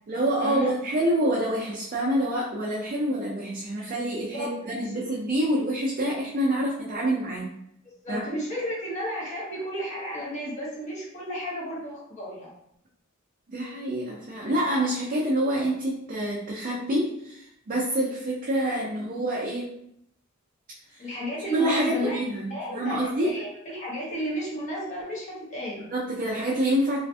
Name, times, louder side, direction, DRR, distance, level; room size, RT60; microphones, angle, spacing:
voice 1, 0.1-7.5 8.1-8.3 13.5-19.7 20.9-21.1 21.5-23.3 25.8-27.0, right 1 dB, 40° right, -4 dB, 0.4 m, -27 dB
voice 2, 8.0-12.5 21.0-22.2 22.5-25.8, equal, 35° left, -5 dB, 0.9 m, -33 dB
2.5 x 2.4 x 2.3 m, 0.74 s
head